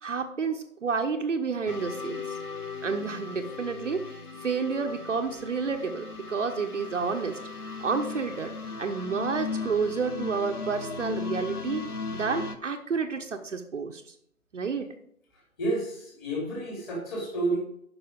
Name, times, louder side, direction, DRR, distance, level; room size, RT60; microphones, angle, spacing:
voice 1, 0.0-2.4 2.8-7.4 7.8-8.5 8.8-11.8 12.1-14.0 14.5-14.9, right 5 dB, 55° right, 5 dB, 1.1 m, -30 dB
sound 1, 1.7-12.6, left 4 dB, 90° left, 1.2 m, -37 dB
voice 2, 15.6-17.6, right 2 dB, 20° left, -3 dB, 3.2 m, -30 dB
9.7 x 5.9 x 5.2 m, 0.71 s
figure-of-eight pair, 150°, 43 cm